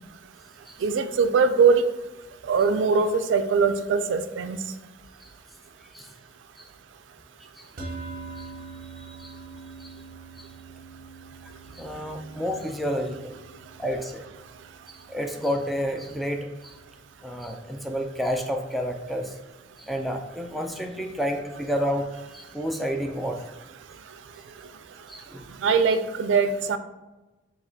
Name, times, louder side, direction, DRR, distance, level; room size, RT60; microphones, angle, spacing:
voice 1, 0.8-1.8 2.5-4.6 25.6-26.8, right 5 dB, 85° right, 10 dB, 0.3 m, -21 dB
sound 1, 7.8-18.2, right 4 dB, 55° right, 0.7 m, -45 dB
voice 2, 9.0-9.3 9.8-9.9 10.4-10.5 11.7-13.3 13.8-14.2 15.1-16.7 17.2-19.3 19.8-22.1 22.3-23.4 25.1-25.5, equal, ahead, 2 dB, 0.3 m, -30 dB
5.0 x 2.9 x 2.7 m, 1.1 s
head